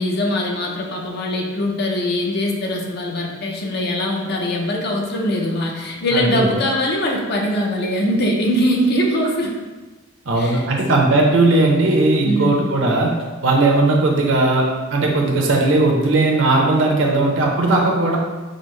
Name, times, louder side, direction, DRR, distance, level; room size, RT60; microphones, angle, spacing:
voice 1, 0.0-9.6 10.4-10.7 12.2-12.7, left 1 dB, 55° left, 0 dB, 0.6 m, -22 dB
voice 2, 6.1-6.5 10.3-13.1 13.4-14.7 14.9-18.2, right 2 dB, 70° right, 0 dB, 0.7 m, -17 dB
5.0 x 2.0 x 3.1 m, 1.3 s
head